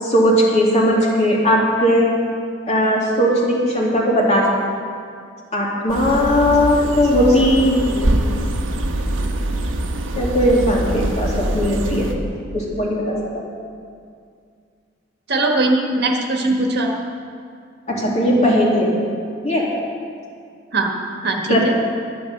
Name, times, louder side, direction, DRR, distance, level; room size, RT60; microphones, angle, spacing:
voice 1, 0.0-2.1 2.7-4.5 5.5-7.8 10.1-12.1 12.5-13.4 17.9-18.9 19.4-19.7 21.5-21.6, equal, 35° left, -4 dB, 2.7 m, -17 dB
sound 1, 5.9-12.2, right 1 dB, 80° right, 1.2 m, -23 dB
voice 2, 15.3-16.9 20.7-20.9 21.2-21.7, right 2 dB, 60° right, 1 dB, 1.5 m, -20 dB
11.5 x 10.0 x 6.6 m, 2.3 s
head